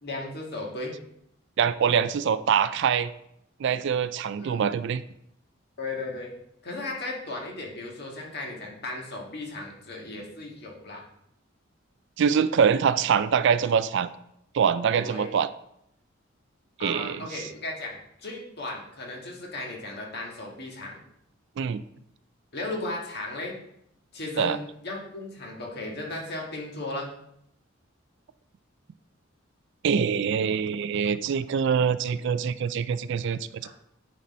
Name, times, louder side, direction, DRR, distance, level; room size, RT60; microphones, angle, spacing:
voice 1, 0.0-0.9 4.4-4.6 5.8-6.3 6.6-11.0 15.0-15.3 16.8-21.0 22.5-23.5 24.1-27.1 33.6-33.7, left 2 dB, 55° left, -1 dB, 1.7 m, -36 dB
voice 2, 1.6-3.1 3.6-5.0 12.2-14.1 14.5-15.5 16.8-17.4 21.6-21.8 24.4-24.6 29.8-33.7, right 7 dB, 65° right, 14 dB, 0.4 m, -24 dB
9.3 x 4.1 x 4.2 m, 0.76 s
head